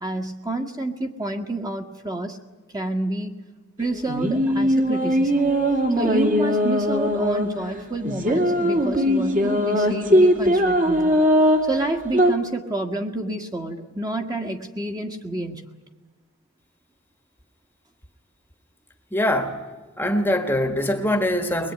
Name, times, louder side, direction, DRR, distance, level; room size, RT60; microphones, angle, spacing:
voice 1, 0.0-2.4 2.7-3.3 3.8-5.5 6.0-11.2 11.6-15.6, right 1 dB, 15° right, 4 dB, 1.7 m, -29 dB
sound 1, 3.8-12.3, equal, 35° right, 2.5 m, -20 dB
voice 2, 19.1-19.6 20.0-21.7, left 1 dB, 10° left, 6 dB, 1.5 m, -23 dB
22.0 x 21.5 x 9.4 m, 1.3 s
head